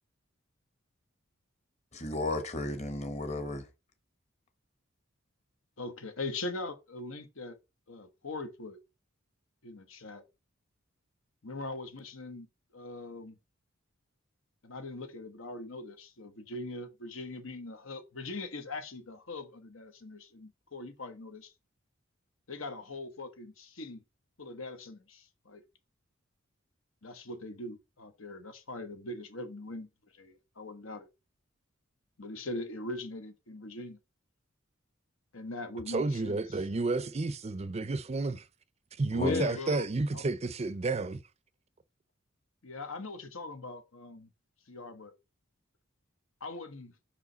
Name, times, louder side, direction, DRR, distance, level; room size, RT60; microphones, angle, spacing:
voice 1, 1.9-3.6 39.1-39.4, left 2 dB, 35° left, 1.2 m, -33 dB
voice 2, 5.8-7.6 7.9-8.8 9.6-10.2 11.4-12.5 12.7-13.3 14.6-21.5 22.5-24.0 24.4-25.6 27.0-31.1 32.2-34.0 35.3-36.4 39.1-39.8 40.1-40.2 42.6-44.3 44.7-45.1 46.4-46.9, left 2 dB, 80° left, 1.2 m, -41 dB
voice 3, 35.9-38.5 39.0-41.2, right 3 dB, 30° right, 0.5 m, -31 dB
5.5 x 4.9 x 4.0 m
head